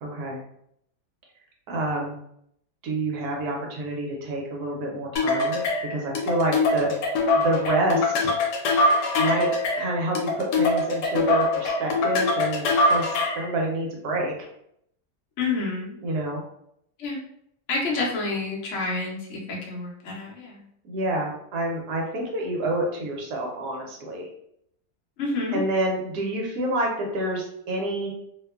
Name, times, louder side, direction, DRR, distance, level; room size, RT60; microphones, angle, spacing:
voice 1, 0.0-0.4 1.7-2.2 2.8-5.6 5.9-6.9 7.3-8.3 9.2-9.5 9.8-13.1 13.3-14.3 16.0-16.4 20.8-24.3 25.5-28.1, right 1 dB, 75° right, 0 dB, 1.1 m, -28 dB
sound 1, 5.2-13.5, left 2 dB, 85° left, 1.2 m, -23 dB
voice 2, 15.4-16.0 17.0-17.2 17.7-20.6 25.2-25.6, left 3 dB, 60° left, -3 dB, 0.9 m, -28 dB
2.9 x 2.1 x 2.2 m, 0.72 s
omnidirectional pair, 1.8 m